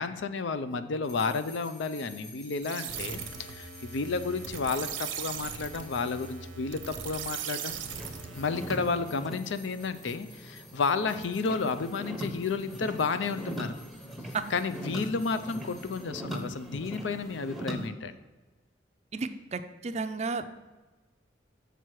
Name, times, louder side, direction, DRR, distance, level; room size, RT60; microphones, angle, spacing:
voice 1, 0.0-7.8 8.4-13.7 14.5-18.1, left 4 dB, 75° left, 11 dB, 0.5 m, -31 dB
sound 1, 1.0-16.4, left 2 dB, 40° left, 2.2 m, -52 dB
sound 2, 2.6-9.0, right 8 dB, 85° right, 0.7 m, -39 dB
sound 3, 7.3-17.9, equal, ahead, 0.7 m, -41 dB
voice 2, 19.1-20.5, right 4 dB, 35° right, 10 dB, 0.4 m, -33 dB
6.7 x 6.0 x 4.7 m, 1.2 s
head